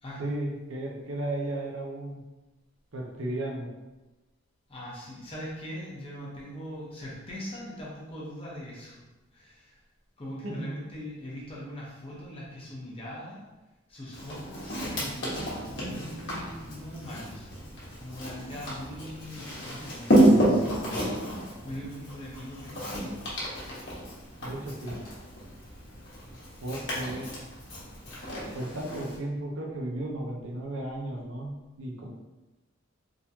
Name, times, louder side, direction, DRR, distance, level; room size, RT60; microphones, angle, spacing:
voice 1, 0.2-2.2 2.9-3.7 10.4-10.7 24.4-25.0 26.6-27.3 28.5-31.5 31.8-32.1, right 1 dB, 75° right, 0 dB, 0.7 m, -34 dB
voice 2, 4.7-9.0 9.3-9.8 10.2-13.4 13.9-17.5 18.0-23.4, equal, 25° left, -5 dB, 0.9 m, -41 dB
Walk footsteps, 14.1-29.2, right 1 dB, 60° left, 1.2 m, -30 dB
3.8 x 2.9 x 2.7 m, 1.1 s
head